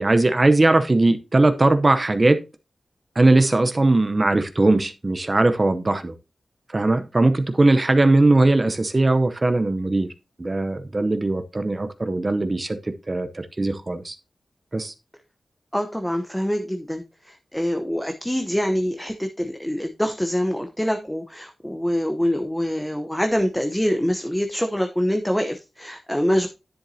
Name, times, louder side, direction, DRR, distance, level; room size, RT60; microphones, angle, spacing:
voice 1, 0.0-2.4 3.2-6.1 6.7-10.1 10.4-14.2 14.7-14.9, right 2 dB, 35° right, 0.7 m, -19 dB
voice 2, 15.7-26.5, equal, 5° left, 0.8 m, -25 dB
10.5 x 7.1 x 2.7 m
wide cardioid pair, 75°, 0 cm